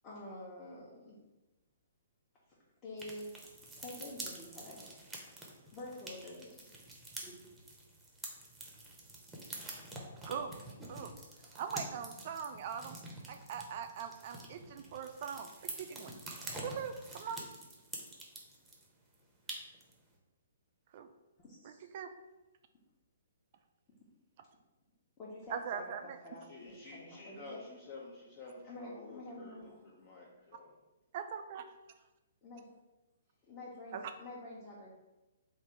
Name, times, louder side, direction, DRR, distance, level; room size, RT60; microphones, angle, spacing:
voice 1, 0.0-1.2 2.8-3.3 3.8-5.1 5.7-6.7 7.2-7.3 21.4-21.9 25.2-27.6 28.7-29.8 32.4-32.7 33.5-34.9, left 1 dB, 25° left, -7 dB, 1.0 m, -48 dB
sound 1, 3.0-18.9 19.1-19.2 19.5-19.9, right 2 dB, 5° right, 0.8 m, -47 dB
voice 2, 10.2-10.5 10.9-11.1 11.5-13.0 13.3-16.1 16.6-17.5 20.9-21.1 21.6-22.1 25.5-26.0 31.1-31.6 33.9-34.0, right 7 dB, 45° right, 8 dB, 0.3 m, -41 dB
voice 3, 26.4-30.8, left 2 dB, 40° left, -3 dB, 0.8 m, -51 dB
3.4 x 2.6 x 4.3 m, 1.0 s
hypercardioid pair, 130°, 0 cm